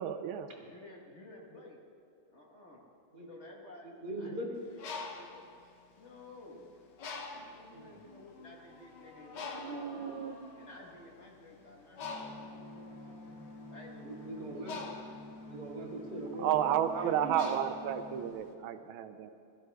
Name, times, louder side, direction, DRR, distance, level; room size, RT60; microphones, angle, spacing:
voice 1, 0.0-0.5 9.5-10.4 16.4-19.3, right 10 dB, 75° right, 9 dB, 1.5 m, -32 dB
voice 2, 0.6-1.8 2.3-2.8 3.2-3.9 4.2-5.6 6.0-6.7 7.5-9.8 10.5-12.4 13.7-14.4, left 2 dB, 35° left, -1 dB, 1.6 m, -53 dB
voice 3, 3.8-4.6 7.3-7.4 7.7-8.0 14.0-14.9 15.5-17.4, right 2 dB, 45° right, -2 dB, 2.6 m, -41 dB
Bird, 4.6-6.4 7.0-7.7 8.3-8.5 8.7-18.5, left 4 dB, 60° left, 1.5 m, -44 dB
sound 1, 7.8-17.2, left 2 dB, 75° left, 2.3 m, -58 dB
sound 2, 12.0-18.3, left 1 dB, 10° left, 2.2 m, -49 dB
17.0 x 13.5 x 3.4 m, 2.4 s
omnidirectional pair, 2.3 m